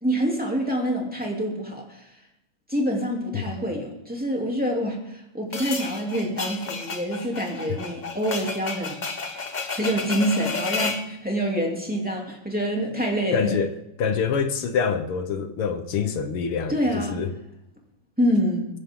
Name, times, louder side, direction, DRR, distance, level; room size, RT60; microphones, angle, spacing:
voice 1, 0.0-2.1 2.7-9.0 9.3-13.6 16.7-17.2 18.2-18.7, equal, 5° right, -1 dB, 2.8 m, -26 dB
sound 1, 5.5-11.1, left 4 dB, 55° left, 0.5 m, -31 dB
voice 2, 13.3-13.7 14.0-17.3, left 6 dB, 75° left, 8 dB, 2.1 m, -26 dB
22.0 x 10.5 x 3.8 m, 0.86 s
omnidirectional pair, 2.4 m